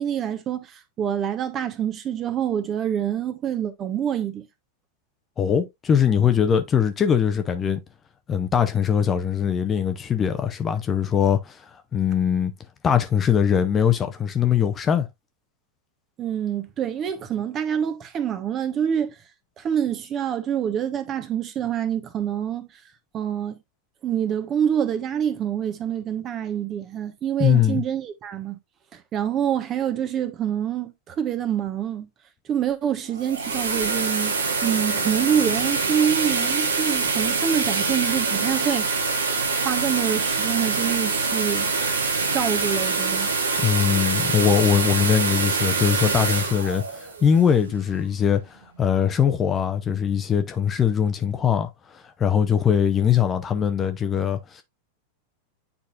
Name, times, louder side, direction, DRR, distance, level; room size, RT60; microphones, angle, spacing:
voice 1, 0.0-4.5 16.2-19.1 19.6-22.7 23.1-23.6 24.0-28.6 28.9-32.1 32.5-38.9 39.6-41.7 42.3-43.3, right 9 dB, 30° right, 1.2 m, -26 dB
voice 2, 5.4-7.8 8.3-12.5 12.8-15.1 27.4-27.8 43.6-54.6, left 8 dB, 25° left, 0.8 m, -21 dB
sound 1, 33.0-48.0, right 4 dB, 70° right, 1.2 m, -25 dB
9.5 x 4.2 x 2.5 m
figure-of-eight pair, 90°, 0 cm